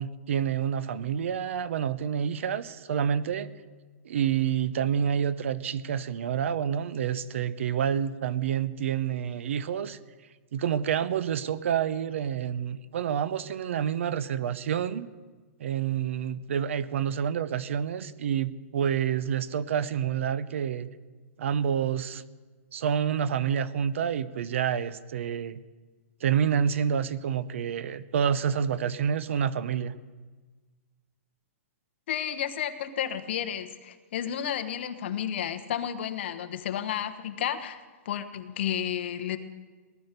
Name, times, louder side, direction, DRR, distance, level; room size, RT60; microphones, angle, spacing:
voice 1, 0.0-3.5 4.0-10.0 10.5-15.1 15.6-20.9 21.4-22.2 22.7-25.6 26.2-29.9, right 8 dB, 55° right, 16 dB, 0.7 m, -28 dB
voice 2, 32.1-39.4, left 9 dB, 45° left, 9 dB, 1.1 m, -32 dB
19.0 x 11.5 x 6.7 m, 1.4 s
hypercardioid pair, 170°, 8 cm